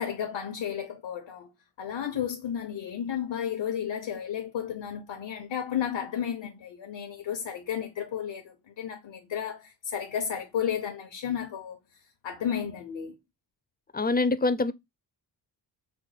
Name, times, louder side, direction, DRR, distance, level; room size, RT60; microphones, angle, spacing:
voice 1, 0.0-1.5 1.8-11.8 12.2-13.2, left 9 dB, 85° left, 0.8 m, -33 dB
voice 2, 13.9-14.7, left 3 dB, 25° left, 0.3 m, -24 dB
5.1 x 2.1 x 3.2 m
wide cardioid pair, 85°, 43 cm